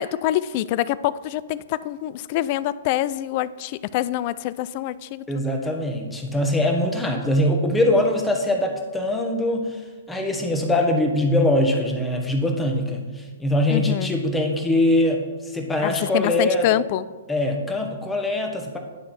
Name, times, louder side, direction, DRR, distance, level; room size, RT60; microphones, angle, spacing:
voice 1, 0.0-5.7 13.7-14.2 15.8-17.1, left 14 dB, 45° left, 18 dB, 0.3 m, -26 dB
voice 2, 5.3-16.7 17.3-18.8, left 1 dB, 10° left, 2 dB, 1.2 m, -22 dB
10.0 x 3.8 x 5.8 m, 1.3 s
hypercardioid pair, 125°, 0 cm